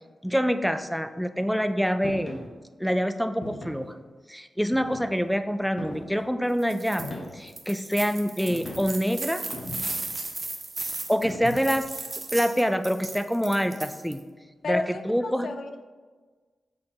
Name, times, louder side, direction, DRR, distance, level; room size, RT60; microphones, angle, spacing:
voice 1, 0.2-2.5 2.8-4.0 4.3-9.4 11.1-11.9 12.3-14.2 14.7-15.5, equal, ahead, 10 dB, 0.4 m, -26 dB
sound 1, 2.0-2.5 3.4-3.9 4.7-5.3 5.8-6.2 7.0-7.6 8.5-9.0 9.5-10.1 11.2-11.8, left 2 dB, 50° left, 1.2 m, -39 dB
sound 2, 6.6-7.1 7.5-14.2, right 3 dB, 45° right, 0.8 m, -36 dB
voice 2, 14.6-15.8, left 3 dB, 70° left, 8 dB, 0.4 m, -32 dB
6.7 x 3.9 x 3.7 m, 1.4 s
supercardioid pair, 40°, 0 cm